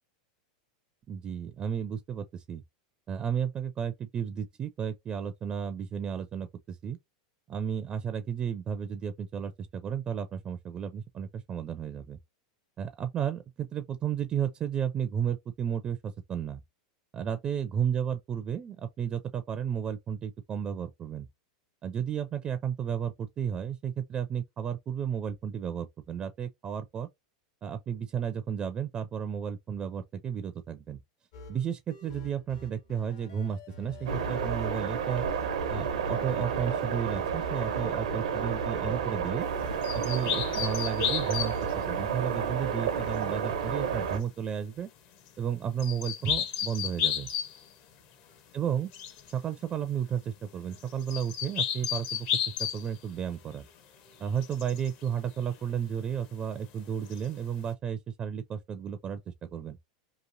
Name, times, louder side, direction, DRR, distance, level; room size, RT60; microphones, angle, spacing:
voice 1, 1.1-2.6 3.1-7.0 7.5-12.2 12.8-16.6 17.1-21.3 21.8-27.1 27.6-31.0 31.5-35.2 35.7-39.5 39.9-41.6 41.9-44.9 45.4-47.3 48.5-48.9 49.3-52.3 52.6-53.7 54.2-59.8, right 8 dB, 30° right, 0.4 m, -33 dB
sound 1, 31.3-40.2, left 1 dB, 70° left, 1.1 m, -48 dB
sound 2, 34.1-44.2, right 6 dB, 90° right, 0.7 m, -31 dB
sound 3, 39.8-41.7 45.8-47.6 48.9-49.3 50.7-52.9 54.4-54.9 57.1-57.2, left 9 dB, 50° left, 0.7 m, -32 dB
2.9 x 2.5 x 2.5 m
hypercardioid pair, 120°, 4 cm